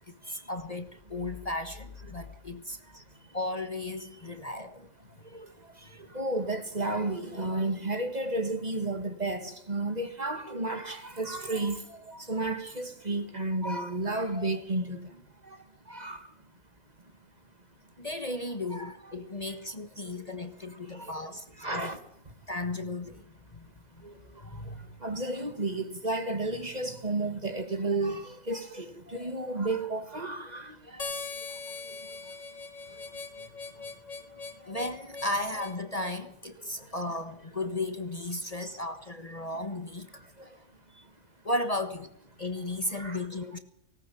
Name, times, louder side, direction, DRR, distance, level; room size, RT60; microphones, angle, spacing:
voice 1, 0.1-2.8 3.3-4.9 5.8-5.9 18.0-21.5 21.7-21.9 22.5-23.2 23.5-23.7 23.9-24.1 24.4-24.9 34.6-40.3 41.4-42.1 42.4-43.6, left 2 dB, 30° left, 1.4 m, -35 dB
voice 2, 5.2-16.3 18.7-19.3 20.0-20.3 20.8-21.2 21.6-22.0 24.0-32.4 32.9-33.5 33.8-33.9 34.6-34.7 36.6-36.9 38.6-38.7 40.4-40.6 40.9-41.1 42.9-43.3, right 2 dB, 35° right, 2.0 m, -34 dB
Harmonica, 31.0-36.2, left 4 dB, 80° left, 2.6 m, -40 dB
18.5 x 18.0 x 8.5 m
omnidirectional pair, 1.3 m